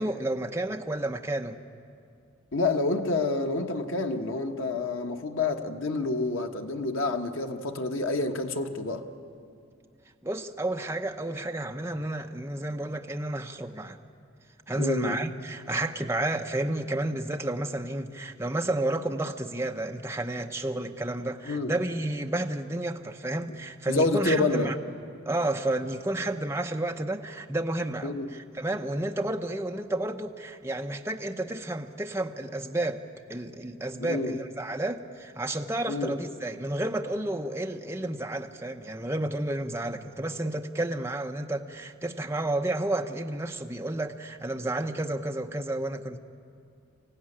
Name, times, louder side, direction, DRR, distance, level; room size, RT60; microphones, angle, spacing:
voice 1, 0.0-1.6 10.2-14.0 14.7-24.8 25.2-33.0 33.3-46.2, right 1 dB, 15° right, 0.8 m, -31 dB
voice 2, 2.5-9.0 14.8-15.2 21.4-21.7 23.9-24.7 28.0-28.3 34.0-34.4 35.9-36.2, left 3 dB, 80° left, 1.3 m, -28 dB
24.5 x 16.0 x 9.9 m
head